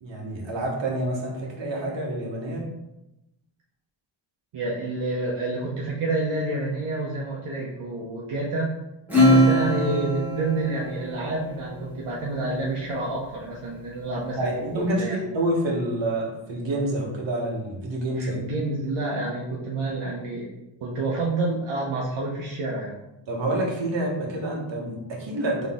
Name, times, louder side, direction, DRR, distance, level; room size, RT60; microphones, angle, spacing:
voice 1, 0.0-2.6 9.4-9.5 14.4-18.4 23.3-25.7, right 1 dB, 60° right, -2 dB, 1.3 m, -28 dB
voice 2, 4.5-8.7 9.3-14.5 14.8-15.2 18.1-20.5 20.8-22.9, right 2 dB, 85° right, -4 dB, 0.9 m, -28 dB
Acoustic guitar / Strum, 9.1-12.0, equal, 5° right, 1.3 m, -22 dB
3.9 x 3.1 x 3.6 m, 0.91 s
cardioid pair, 80°, 49 cm